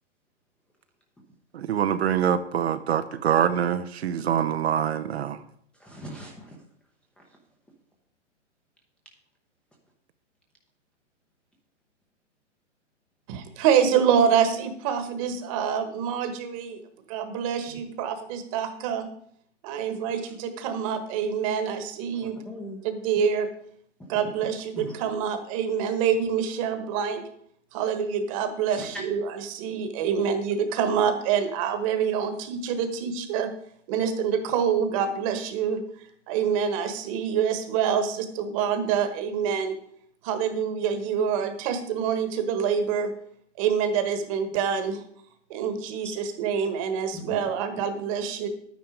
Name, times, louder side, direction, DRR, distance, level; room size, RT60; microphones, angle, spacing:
voice 1, 1.5-5.4, right 9 dB, 60° right, 0.8 m, -25 dB
voice 2, 5.8-6.6 20.1-20.2 22.4-22.8 24.8-25.0 28.7-29.0 47.1-47.4, equal, 5° left, 0.7 m, -39 dB
voice 3, 13.3-16.8 17.1-19.1 19.6-22.4 22.8-23.5 24.1-27.2 27.7-33.5 33.9-35.8 36.3-39.8 40.2-43.1 43.6-45.0 45.5-48.5, right 7 dB, 25° right, 1.3 m, -26 dB
10.0 x 9.4 x 5.0 m
hypercardioid pair, 155°, 37 cm